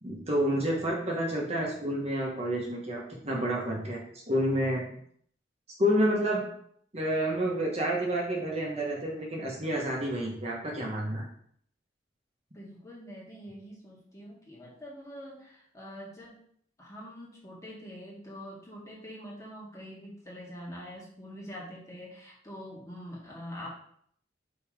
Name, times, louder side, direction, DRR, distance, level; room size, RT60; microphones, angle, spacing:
voice 1, 0.0-4.0 4.3-4.8 5.8-6.5 6.9-11.3, equal, 35° right, -2 dB, 1.3 m, -29 dB
voice 2, 12.5-16.4 16.8-23.7, equal, 15° left, -4 dB, 1.9 m, -44 dB
5.5 x 4.2 x 5.0 m, 0.64 s
head